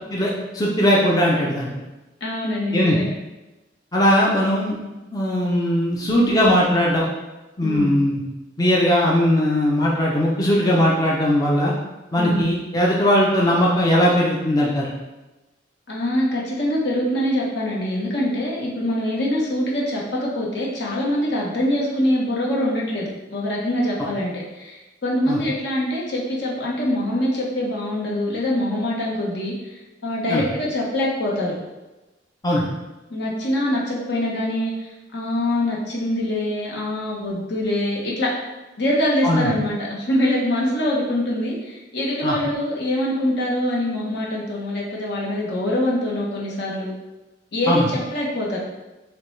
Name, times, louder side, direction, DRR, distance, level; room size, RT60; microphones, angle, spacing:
voice 1, 0.1-1.7 2.7-3.0 3.9-4.8 5.1-7.1 7.6-8.2 8.6-11.7 12.1-15.0 25.3-25.4 30.3-30.5 32.4-32.7 39.2-39.5 42.2-42.4 47.7-47.9, equal, 20° left, -4 dB, 0.6 m, -19 dB
voice 2, 2.2-3.0 7.6-7.9 12.2-12.4 15.9-31.5 33.1-38.3 38.8-46.9 47.5-48.6, left 1 dB, 65° left, -4 dB, 1.1 m, -24 dB
6.7 x 2.3 x 3.2 m, 1.1 s
head